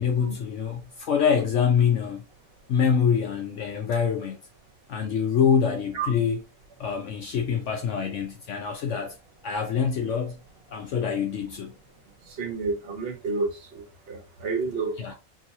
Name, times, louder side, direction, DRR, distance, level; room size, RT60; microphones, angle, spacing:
voice 1, 0.0-2.2 2.7-4.4 4.9-6.4 6.8-9.2 9.4-10.4 10.7-11.7 15.0-15.1, left 7 dB, 65° left, 0.9 m, -25 dB
voice 2, 12.4-13.5 13.7-14.9, right 4 dB, 45° right, 1.1 m, -29 dB
3.9 x 2.9 x 2.7 m
omnidirectional pair, 1.5 m